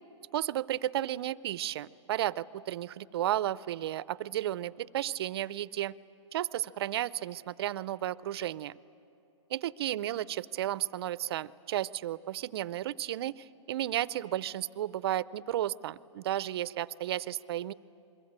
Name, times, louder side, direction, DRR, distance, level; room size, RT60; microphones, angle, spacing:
voice 1, 0.3-6.0 6.3-8.8 9.5-17.7, right 12 dB, 50° right, 18 dB, 0.6 m, -33 dB
28.5 x 22.5 x 8.8 m, 2.7 s
hypercardioid pair, 150°, 16 cm